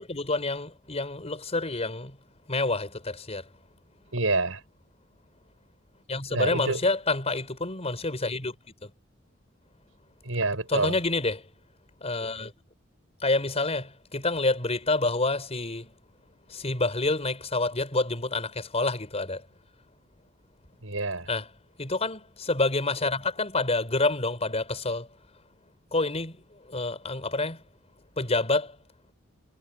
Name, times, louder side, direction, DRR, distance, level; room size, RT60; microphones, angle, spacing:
voice 1, 0.0-2.2 2.5-3.5 6.1-8.6 8.8-8.9 10.7-11.5 12.0-12.5 13.2-15.9 16.5-19.5 21.3-21.5 21.8-25.1 25.9-27.6 28.2-28.8, left 2 dB, 30° left, 4.7 m, -28 dB
voice 2, 4.1-4.6 6.3-6.8 10.2-11.0 20.8-21.3, right 3 dB, 90° right, 6.6 m, -27 dB
head